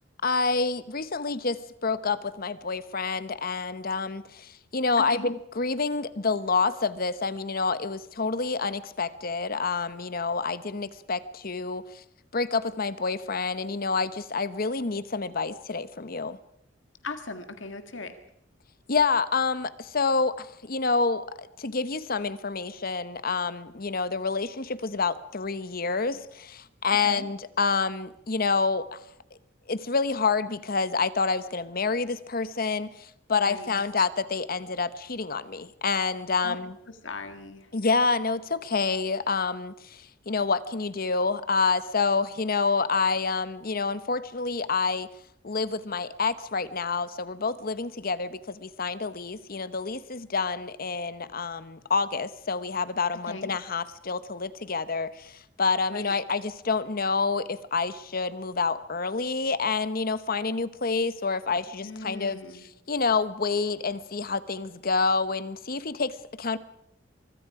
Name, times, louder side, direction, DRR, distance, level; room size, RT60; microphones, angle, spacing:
voice 1, 0.2-12.0 12.3-16.4 18.9-29.0 29.7-36.7 37.7-45.1 45.4-62.4 62.9-66.6, left 4 dB, 50° left, 14 dB, 1.0 m, -28 dB
voice 2, 5.0-5.3 17.0-18.1 26.1-26.2 27.0-27.3 33.4-33.7 36.4-36.6 36.9-37.7 53.3-53.5 55.9-56.1 61.8-62.6, left 3 dB, 80° left, 8 dB, 1.9 m, -38 dB
24.0 x 23.5 x 4.9 m, 0.79 s
head